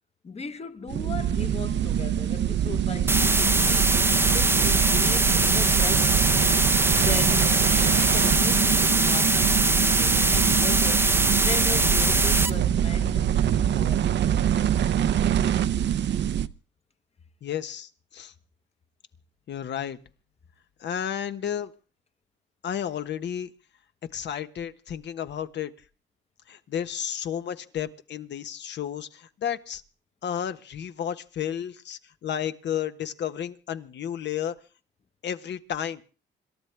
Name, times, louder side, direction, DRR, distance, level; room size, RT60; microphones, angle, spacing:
voice 1, 0.2-6.2 7.0-11.2 11.4-14.3, left 5 dB, 30° left, 1.2 m, -37 dB
sound 1, 0.9-16.5, right 10 dB, 60° right, 0.8 m, -25 dB
sound 2, 3.1-12.5, right 2 dB, 10° right, 0.7 m, -22 dB
voice 2, 17.4-18.3 19.5-20.0 20.8-21.7 22.6-23.5 24.1-25.7 26.5-29.8 30.2-34.6 35.2-36.0, left 9 dB, 60° left, 1.3 m, -32 dB
27.0 x 13.0 x 3.4 m
cardioid pair, 90°, 20 cm